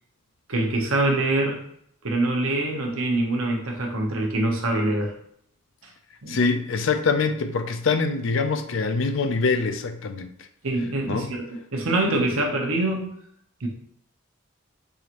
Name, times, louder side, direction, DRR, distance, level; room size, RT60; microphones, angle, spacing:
voice 1, 0.5-1.6 2.0-5.1 6.2-6.4 10.6-11.4 11.7-13.1 13.6-13.7, right 2 dB, 80° right, 1 dB, 0.9 m, -24 dB
voice 2, 6.3-10.3 11.1-11.3, left 4 dB, 65° left, 8 dB, 0.4 m, -24 dB
4.7 x 3.0 x 2.5 m, 0.69 s
head